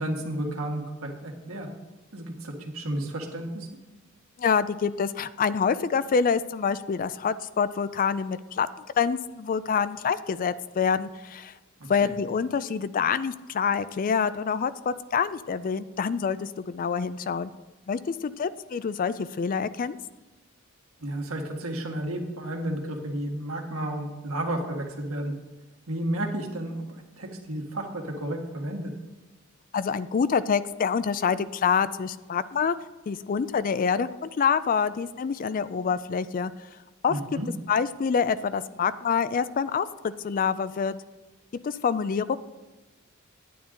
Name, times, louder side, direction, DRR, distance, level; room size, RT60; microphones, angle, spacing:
voice 1, 0.0-1.7 2.1-3.7 11.8-12.1 21.0-25.3 25.9-26.9 27.2-28.9 37.1-37.5, right 1 dB, 80° right, 2 dB, 1.7 m, -32 dB
voice 2, 4.4-8.7 9.0-11.5 11.9-17.5 17.9-20.0 29.7-32.8 33.1-36.5 37.0-37.1 37.7-40.9 41.6-42.4, left 6 dB, 40° left, 15 dB, 0.3 m, -26 dB
10.5 x 9.4 x 3.8 m, 1.1 s
head